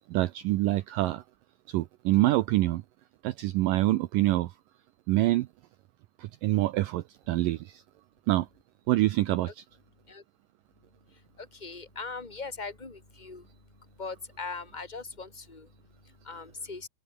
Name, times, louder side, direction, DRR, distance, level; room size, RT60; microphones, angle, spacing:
voice 1, 0.1-1.2 1.7-2.8 3.2-4.5 5.1-5.5 6.2-7.8 8.3-8.5 8.9-9.5, right 17 dB, 85° right, 1.9 m, -26 dB
voice 2, 11.1-16.9, left 4 dB, 10° left, 3.3 m, -41 dB
open air
omnidirectional pair, 4.9 m